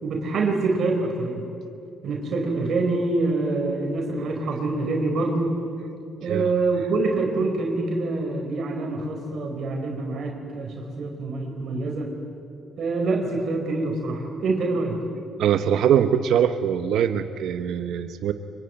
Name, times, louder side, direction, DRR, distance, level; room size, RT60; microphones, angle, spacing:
voice 1, 0.0-1.5 2.0-5.6 6.2-12.1 12.8-15.0, right 3 dB, 65° right, 2 dB, 4.8 m, -25 dB
voice 2, 15.4-18.3, right 9 dB, 80° right, 9 dB, 1.1 m, -22 dB
25.5 x 23.0 x 9.4 m, 2.5 s
cardioid pair, 90°, 0 cm